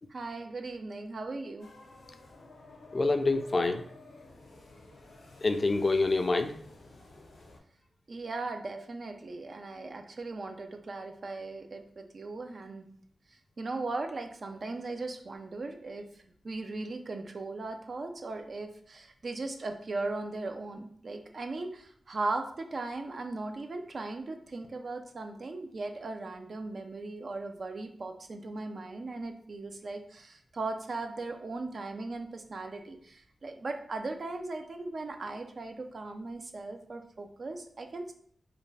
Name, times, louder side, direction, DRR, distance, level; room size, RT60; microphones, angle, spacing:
voice 1, 0.1-1.7 8.1-12.9 13.6-38.1, right 3 dB, 60° right, 5 dB, 0.4 m, -38 dB
sound 1, 1.6-7.6, left 2 dB, 85° left, 0.7 m, -53 dB
voice 2, 2.9-3.8 5.4-6.5, left 3 dB, 50° left, 7 dB, 0.3 m, -26 dB
2.5 x 2.2 x 3.2 m, 0.62 s
cardioid pair, 45°, 0 cm